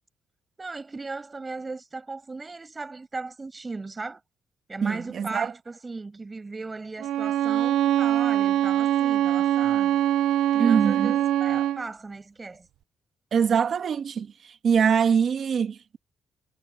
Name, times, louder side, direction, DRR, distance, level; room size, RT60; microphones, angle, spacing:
voice 1, 0.6-4.2 4.7-10.0 10.5-12.7, right 3 dB, 20° right, 7.8 m, -37 dB
voice 2, 4.8-5.5 10.6-11.1 13.3-16.0, right 7 dB, 45° right, 2.0 m, -23 dB
Bowed string instrument, 7.0-11.9, right 11 dB, 80° right, 0.5 m, -23 dB
cardioid pair, 160°, 0 cm